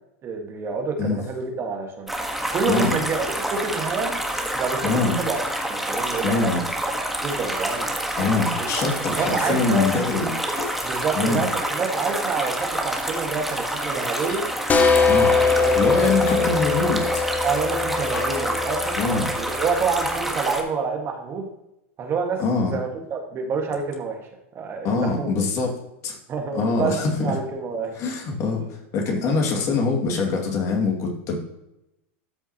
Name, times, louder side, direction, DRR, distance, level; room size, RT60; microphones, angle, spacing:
voice 1, 0.2-2.1 2.5-4.2 4.5-5.4 5.6-6.6 7.1-7.9 8.2-8.7 9.1-9.9 10.8-14.5 15.1-16.5 17.4-19.0 19.3-21.5 22.0-22.4 22.7-24.3 24.5-25.3 26.3-28.0, right 5 dB, 35° right, 3 dB, 1.8 m, -28 dB
sound 1, 2.1-20.6, right 1 dB, 5° right, 1.5 m, -28 dB
voice 2, 4.8-5.2 6.2-6.6 8.2-10.3 11.1-11.4 15.1-15.3 15.7-17.2 19.0-19.3 22.4-22.8 24.8-25.8 26.0-26.2 26.5-27.3 27.9-28.6 28.9-31.3, left 4 dB, 45° left, 1 dB, 2.4 m, -23 dB
sound 2, 8.8-9.1 10.6-10.9 12.4-12.7 14.3-14.5 16.3-16.6 18.1-18.5 20.2-20.3, left 5 dB, 80° left, 2.6 m, -39 dB
sound 3, 14.7-20.1, left 4 dB, 20° left, 1.0 m, -22 dB
13.0 x 5.7 x 3.0 m, 0.86 s
hypercardioid pair, 105°, 7 cm